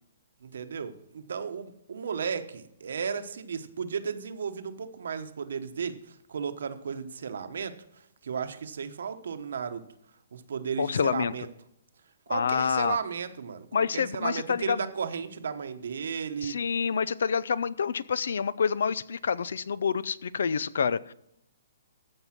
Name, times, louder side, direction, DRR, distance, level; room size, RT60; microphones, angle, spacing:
voice 1, 0.4-7.7 8.2-9.8 10.3-11.5 12.3-16.6, right 6 dB, 75° right, 9 dB, 1.1 m, -34 dB
voice 2, 10.8-11.3 12.3-13.0 13.7-14.8 16.4-21.1, left 6 dB, 80° left, 19 dB, 0.5 m, -27 dB
14.5 x 5.4 x 6.0 m, 0.78 s
hypercardioid pair, 165°, 0 cm